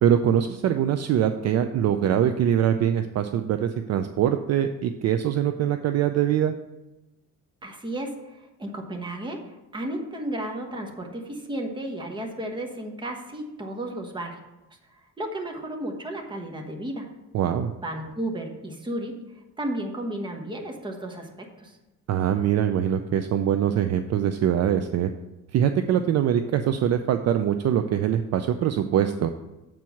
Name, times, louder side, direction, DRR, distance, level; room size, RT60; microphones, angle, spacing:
voice 1, 0.0-6.5 17.3-17.7 22.1-25.1 25.5-29.3, right 9 dB, 50° right, 8 dB, 0.4 m, -23 dB
voice 2, 7.6-14.4 15.2-17.0 17.8-19.1 19.6-21.3 21.6-21.8, right 1 dB, 15° right, 2 dB, 1.1 m, -33 dB
7.5 x 4.6 x 7.0 m, 1.0 s
cardioid pair, 150°, 33 cm